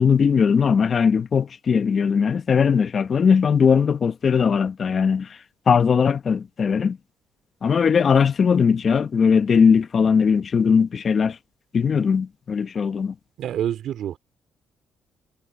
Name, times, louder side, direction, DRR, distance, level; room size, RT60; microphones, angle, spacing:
voice 1, 0.0-5.4 5.7-7.0 7.6-11.4 11.7-13.1, left 6 dB, 45° left, 0.9 m, -19 dB
voice 2, 13.4-14.2, right 10 dB, 75° right, 2.6 m, -27 dB
cardioid pair, 90°, 0 cm